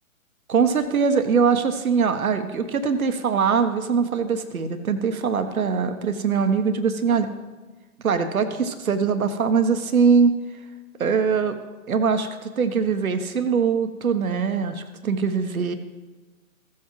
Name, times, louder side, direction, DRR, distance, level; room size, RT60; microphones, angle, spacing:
voice 1, 0.5-7.3 8.0-10.3 11.0-11.5 11.9-15.7, right 5 dB, 75° right, 8 dB, 1.1 m, -22 dB
15.5 x 7.5 x 3.1 m, 1.2 s
figure-of-eight pair, 140°, 43 cm